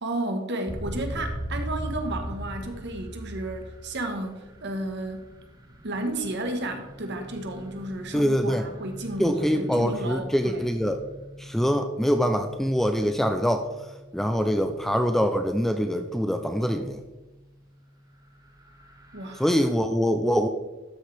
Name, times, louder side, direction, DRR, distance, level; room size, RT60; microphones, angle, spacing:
voice 1, 0.0-5.3 5.8-10.7 19.1-19.4, right 1 dB, 55° right, 5 dB, 1.3 m, -32 dB
sound 1, 0.7-17.7 18.1-19.7, equal, 15° right, 0.9 m, -41 dB
voice 2, 8.1-8.6 9.2-11.0 11.4-13.7 14.1-17.0 19.4-20.5, equal, ahead, 6 dB, 0.4 m, -24 dB
12.5 x 6.5 x 3.4 m, 1.1 s
head